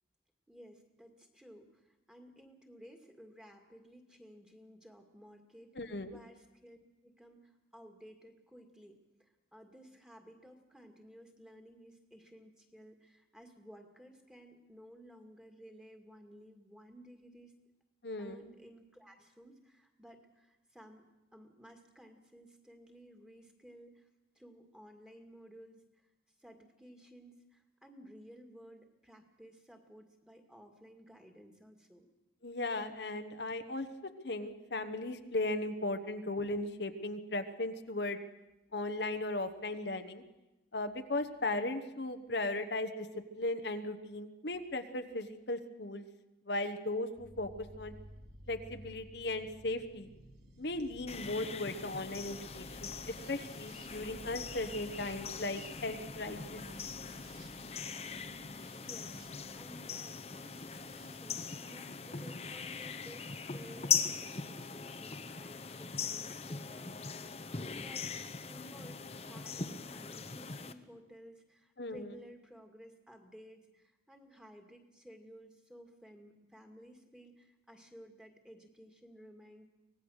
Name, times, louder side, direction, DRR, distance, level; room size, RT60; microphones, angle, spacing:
voice 1, 0.5-6.8 7.0-17.5 18.2-24.1 24.3-26.1 26.4-32.1 58.8-67.4 67.8-68.1 68.5-79.7, equal, 5° right, 3 dB, 2.1 m, -56 dB
voice 2, 5.8-6.1 18.0-18.4 32.4-33.9 34.2-38.2 38.7-40.2 40.7-43.1 43.4-46.0 46.5-47.5 47.8-47.9 48.5-50.1 50.6-56.6 71.8-72.1, left 2 dB, 70° left, 7 dB, 1.2 m, -37 dB
sound 1, 47.2-62.9 64.1-64.7, equal, 75° right, 3.5 m, -55 dB
sound 2, 51.1-70.7, left 6 dB, 35° left, 0.9 m, -40 dB
24.5 x 18.5 x 6.5 m, 1.0 s
head